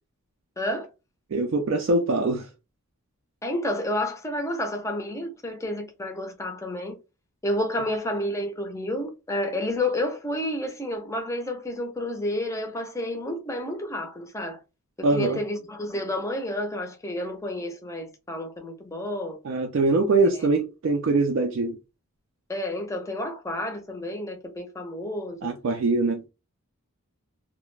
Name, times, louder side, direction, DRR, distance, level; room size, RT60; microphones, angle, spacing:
voice 1, 0.6-0.9 3.4-7.0 7.4-14.6 15.0-19.4 20.3-20.5 22.5-25.4, left 1 dB, 15° left, 0.5 m, -30 dB
voice 2, 1.3-2.5 15.0-15.4 19.4-21.8 25.4-26.3, right 3 dB, 60° right, 0.3 m, -23 dB
2.3 x 2.0 x 3.1 m
head